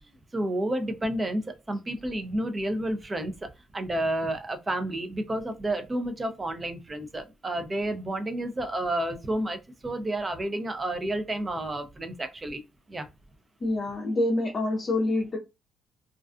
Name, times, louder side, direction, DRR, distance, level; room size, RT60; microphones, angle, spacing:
voice 1, 0.3-3.3 3.7-12.6 12.9-13.1, right 1 dB, 25° right, 0.5 m, -30 dB
voice 2, 13.6-15.4, left 2 dB, 40° left, 0.6 m, -26 dB
2.4 x 2.3 x 2.4 m
cardioid pair, 90°, 0 cm